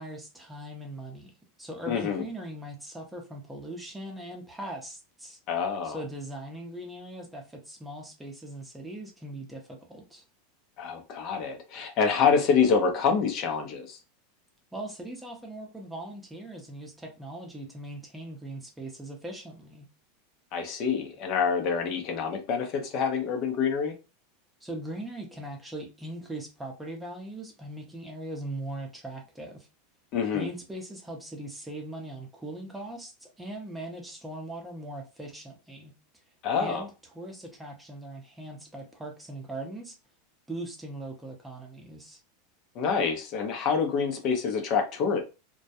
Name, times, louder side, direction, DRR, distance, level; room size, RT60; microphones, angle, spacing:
voice 1, 0.0-1.3 1.6-5.4 5.8-10.2 14.7-19.9 24.6-29.7 30.3-35.9 36.6-36.9 37.1-40.0 40.5-42.2, right 1 dB, 10° right, 0.7 m, -40 dB
voice 2, 1.9-2.2 5.5-6.0 10.8-14.0 20.5-23.9 30.1-30.5 36.4-36.8 42.7-45.2, left 6 dB, 50° left, 0.7 m, -26 dB
2.2 x 2.2 x 2.7 m
hypercardioid pair, 115°, 0 cm